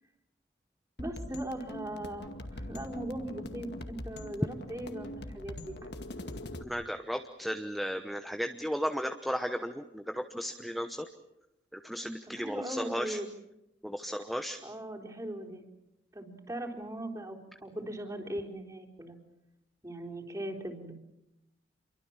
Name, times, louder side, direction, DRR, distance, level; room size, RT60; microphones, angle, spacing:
sound 1, 1.0-6.6, left 1 dB, 60° left, 2.2 m, -42 dB
voice 1, 1.0-5.9 12.2-13.3 14.6-15.6 16.1-19.2 19.8-20.9, right 1 dB, 20° right, 0 dB, 3.9 m, -39 dB
voice 2, 6.6-11.1 11.7-13.2 13.8-14.6, equal, ahead, 6 dB, 0.9 m, -35 dB
28.5 x 23.5 x 7.4 m, 0.91 s
head